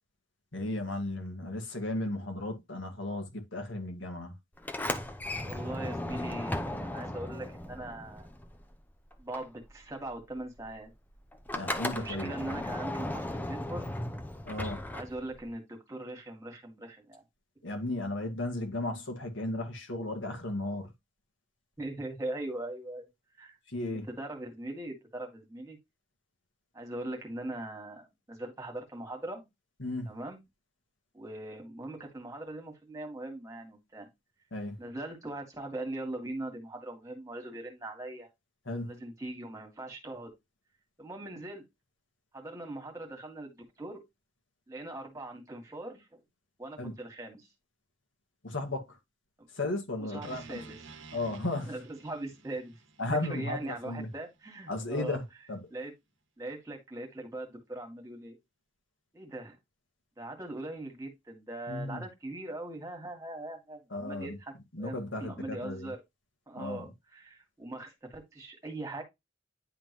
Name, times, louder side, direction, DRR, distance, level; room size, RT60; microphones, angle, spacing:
voice 1, 0.5-4.3 11.5-12.3 14.5-14.8 17.6-20.9 23.7-24.1 29.8-30.1 34.5-34.8 38.7-39.0 46.8-46.9 48.4-49.0 49.5-50.6 51.1-51.7 53.0-54.1 54.7-55.6 61.7-62.0 63.9-64.4 64.7-65.9 66.6-66.9, left 2 dB, 75° left, 2.1 m, -35 dB
Sliding door, 4.6-8.8 9.1-15.5, left 1 dB, 10° left, 0.7 m, -36 dB
voice 2, 5.4-8.3 9.2-10.9 11.9-13.8 14.9-17.2 21.8-23.1 23.4-23.6 23.9-25.8 26.7-29.4 30.1-30.4 31.1-34.1 34.8-38.3 38.8-40.3 41.0-41.6 42.3-44.0 44.7-46.2 46.6-47.5 49.4-49.5 50.0-51.1 51.7-52.7 53.1-55.2 55.7-55.9 56.4-58.4 59.1-59.6 60.2-66.0 66.5-69.0, right 2 dB, 15° right, 2.1 m, -41 dB
sound 1, 50.2-54.4, right 3 dB, 80° right, 1.1 m, -51 dB
10.0 x 3.8 x 3.1 m
head